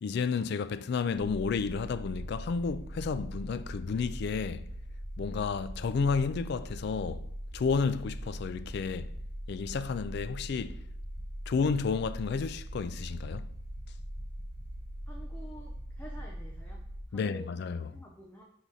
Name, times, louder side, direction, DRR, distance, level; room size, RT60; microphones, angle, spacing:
voice 1, 0.0-4.7 5.2-7.3 7.5-9.1 9.5-10.8 11.5-13.5 17.1-17.9, left 5 dB, 55° left, 0.3 m, -31 dB
sound 1, 1.2-17.0, equal, 10° right, 1.1 m, -41 dB
voice 2, 15.1-16.8 17.1-17.5 17.9-18.4, equal, 10° left, 0.6 m, -49 dB
5.7 x 3.9 x 4.8 m
head